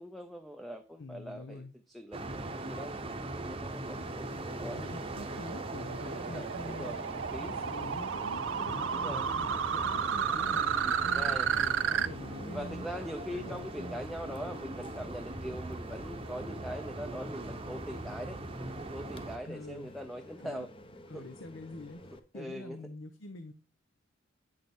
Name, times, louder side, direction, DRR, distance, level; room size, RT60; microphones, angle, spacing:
voice 1, 0.0-2.9 3.4-4.8 6.0-7.5 8.9-9.3 10.6-11.5 12.5-20.7 21.1-21.3 22.3-22.8, equal, ahead, 6 dB, 0.5 m, -42 dB
voice 2, 1.0-1.7 4.6-7.0 7.4-10.6 11.0-12.9 13.3-14.1 19.4-19.9 20.4-20.7 21.1-22.0 22.3-23.5, left 2 dB, 70° left, 9 dB, 0.8 m, -45 dB
sound 1, 2.1-19.4, right 2 dB, 25° right, 0.8 m, -41 dB
sound 2, 3.9-22.2, left 1 dB, 25° left, 0.8 m, -52 dB
sound 3, 4.0-12.1, right 7 dB, 65° right, 0.5 m, -32 dB
8.9 x 6.6 x 3.6 m, 0.36 s
head